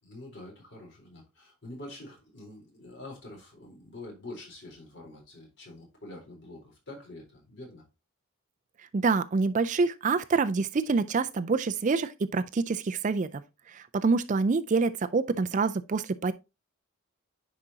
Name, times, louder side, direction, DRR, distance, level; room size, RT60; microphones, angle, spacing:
voice 1, 0.0-7.8, left 2 dB, 50° left, 3.7 m, -46 dB
voice 2, 8.8-13.4 13.7-16.3, right 4 dB, 35° right, 0.4 m, -26 dB
9.7 x 5.0 x 2.7 m
head